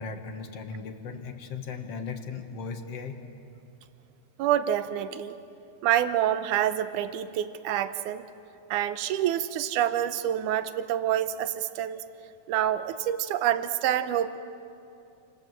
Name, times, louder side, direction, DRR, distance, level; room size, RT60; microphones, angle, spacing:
voice 1, 0.0-3.2, left 5 dB, 50° left, 5 dB, 2.3 m, -37 dB
voice 2, 4.4-5.4 5.8-8.2 8.7-12.0 12.5-14.4, right 11 dB, 70° right, 11 dB, 2.2 m, -27 dB
29.0 x 27.0 x 7.6 m, 2.8 s
omnidirectional pair, 4.1 m